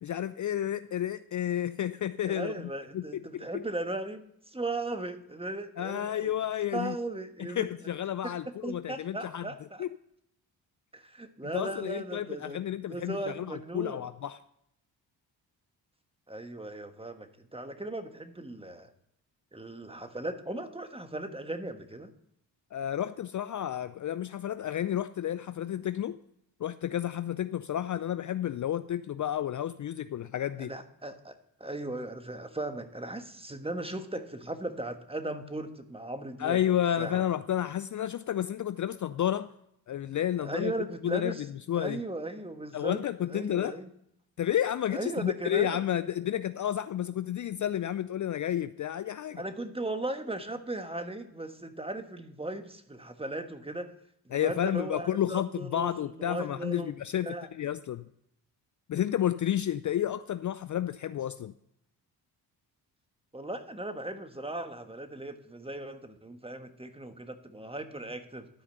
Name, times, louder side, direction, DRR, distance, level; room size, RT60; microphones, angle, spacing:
voice 1, 0.0-2.5 2.9-3.6 5.8-7.0 7.4-9.5 9.8-9.9 11.5-14.4 22.7-26.2 26.6-30.7 36.4-39.5 39.9-40.7 41.0-41.4 41.7-42.0 42.7-43.8 44.4-49.4 54.3-58.1 58.9-61.5, left 11 dB, 45° left, 13 dB, 0.5 m, -31 dB
voice 2, 2.3-6.3 6.7-7.7 8.5-9.8 10.9-14.0 16.3-18.9 19.5-22.1 30.6-36.6 37.0-37.2 40.4-41.5 41.7-43.0 43.3-43.9 44.9-45.8 49.4-53.9 54.2-56.9 57.2-57.5 63.3-68.5, right 2 dB, 15° right, 8 dB, 1.3 m, -37 dB
12.5 x 5.0 x 6.8 m, 0.74 s
supercardioid pair, 55°, 44 cm